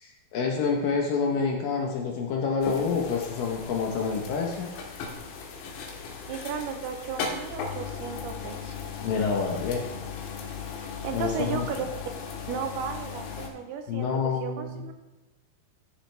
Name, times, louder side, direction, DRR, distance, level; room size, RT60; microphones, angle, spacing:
voice 1, 0.0-4.7 9.0-9.8 11.1-11.7 13.9-14.8, left 5 dB, 70° left, 1 dB, 2.3 m, -28 dB
sound 1, 2.6-13.5, left 5 dB, 85° left, 3.3 m, -37 dB
voice 2, 6.3-8.8 10.8-11.9 12.5-15.0, right 7 dB, 80° right, 6 dB, 2.5 m, -35 dB
13.0 x 6.6 x 3.3 m, 1.1 s
omnidirectional pair, 4.8 m